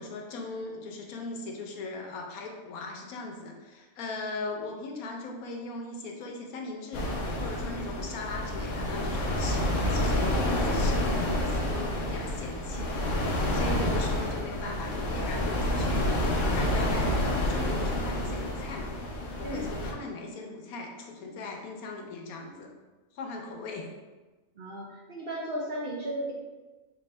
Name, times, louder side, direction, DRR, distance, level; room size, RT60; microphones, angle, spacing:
voice 1, 0.0-7.1 7.4-13.0 13.5-16.1 16.5-18.9 19.4-22.7 23.1-23.9, left 3 dB, 85° left, 1 dB, 1.1 m, -39 dB
sound 1, 6.9-19.9, left 1 dB, 55° left, 0.8 m, -29 dB
voice 2, 24.6-26.3, right 1 dB, 55° right, -4 dB, 0.6 m, -35 dB
4.3 x 2.7 x 3.2 m, 1.2 s
omnidirectional pair, 1.5 m